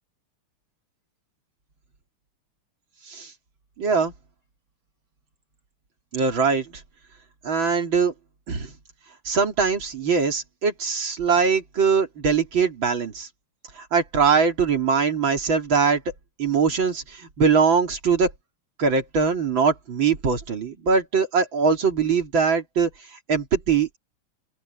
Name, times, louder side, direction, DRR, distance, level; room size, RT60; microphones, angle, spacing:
voice 1, 3.8-4.1 6.1-6.7 7.4-8.1 8.5-8.7 9.3-13.3 13.9-16.0 16.4-18.3 18.8-22.9 23.3-24.0, right 5 dB, 60° right, 3.5 m, -22 dB
open air
omnidirectional pair, 2.4 m